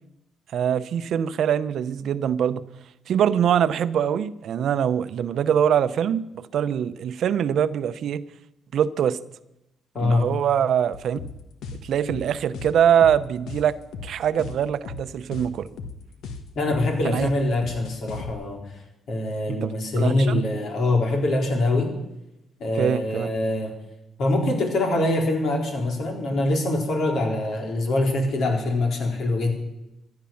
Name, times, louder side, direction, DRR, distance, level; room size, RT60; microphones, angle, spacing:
voice 1, 0.5-2.6 3.1-8.2 8.7-9.2 10.0-11.2 11.8-13.8 14.0-15.7 17.0-17.3 19.5-19.7 20.0-20.4 22.8-23.3, right 9 dB, 70° right, 14 dB, 0.7 m, -23 dB
voice 2, 9.9-10.3 16.6-18.7 19.1-21.9 22.6-23.8 24.2-29.5, left 2 dB, 65° left, 2 dB, 3.8 m, -24 dB
sound 1, 10.9-18.3, left 4 dB, 80° left, 1.4 m, -37 dB
15.0 x 10.5 x 7.2 m, 0.92 s
cardioid pair, 90°, 0 cm